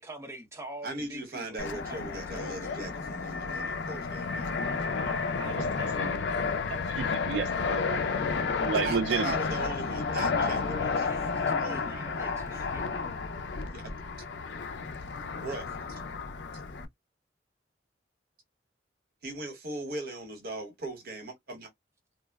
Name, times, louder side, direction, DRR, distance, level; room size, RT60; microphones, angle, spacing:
voice 1, 0.0-2.9 10.1-13.1, right 1 dB, 15° right, 0.6 m, -44 dB
voice 2, 0.8-4.6 8.7-10.6 11.6-12.3 13.7-13.8 15.4-16.0 19.2-21.7, right 2 dB, 55° right, 0.9 m, -39 dB
Fixed-wing aircraft airplane, 1.6-16.9, left 4 dB, 80° left, 0.5 m, -31 dB
voice 3, 5.0-6.1 6.7-8.2 8.6-9.4, right 5 dB, 75° right, 0.3 m, -33 dB
3.1 x 2.0 x 2.2 m
head